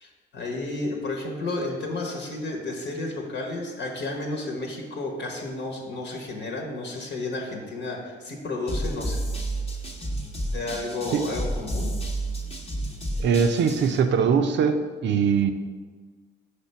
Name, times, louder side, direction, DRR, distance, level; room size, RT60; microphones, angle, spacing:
voice 1, 0.0-9.2 10.5-12.0, left 2 dB, 65° left, 1 dB, 1.1 m, -32 dB
sound 1, 8.7-14.0, right 1 dB, 30° left, 0.9 m, -31 dB
voice 2, 13.2-15.5, right 6 dB, 65° right, 8 dB, 0.5 m, -22 dB
5.9 x 3.4 x 5.5 m, 1.5 s
cardioid pair, 90°, 20 cm